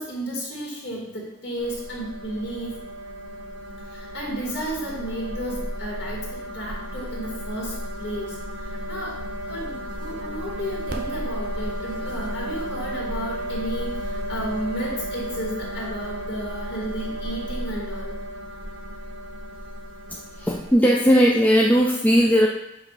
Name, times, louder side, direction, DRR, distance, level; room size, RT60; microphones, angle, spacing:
voice 1, 0.0-2.8 3.9-9.2 9.4-18.2, right 1 dB, 70° left, -4 dB, 2.0 m, -33 dB
sound 1, 1.6-20.8, equal, 75° right, 0.7 m, -33 dB
voice 2, 20.1-22.5, equal, 10° left, -2 dB, 0.4 m, -18 dB
7.2 x 2.8 x 4.6 m, 0.87 s
head